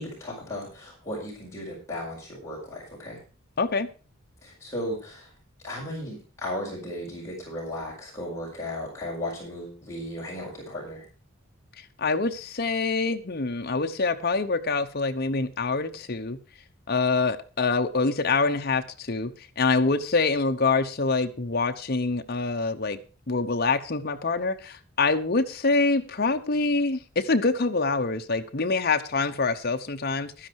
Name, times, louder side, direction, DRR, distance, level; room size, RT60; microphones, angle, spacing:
voice 1, 0.0-3.2 4.4-5.3 5.6-11.1, left 1 dB, 15° left, -6 dB, 5.2 m, -35 dB
voice 2, 3.6-3.9 12.0-16.4 16.9-23.0 23.3-30.5, left 3 dB, 45° left, 6 dB, 0.9 m, -25 dB
12.0 x 10.0 x 4.7 m, 0.36 s
head